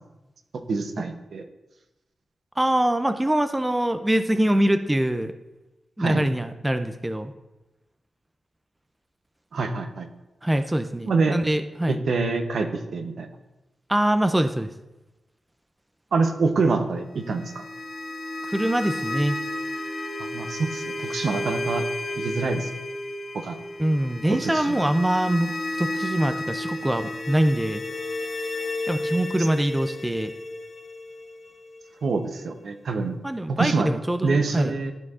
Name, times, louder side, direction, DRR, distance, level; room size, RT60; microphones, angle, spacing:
voice 1, 0.7-1.5 6.0-6.2 9.5-10.1 11.0-11.4 11.9-13.3 16.1-17.6 20.3-21.8 22.2-22.7 23.3-23.6 24.2-24.8 32.0-33.2 33.5-33.9 34.2-34.9, right 4 dB, 70° right, 6 dB, 0.7 m, -26 dB
voice 2, 2.6-5.3 6.0-7.3 10.4-12.0 13.9-14.7 18.5-19.4 23.8-25.5 25.8-27.8 28.9-30.3 33.2-34.8, right 1 dB, 10° right, 9 dB, 0.3 m, -24 dB
sound 1, 17.2-32.1, left 1 dB, 75° left, 1.5 m, -32 dB
12.0 x 4.5 x 2.4 m, 1.0 s
wide cardioid pair, 135°, 0 cm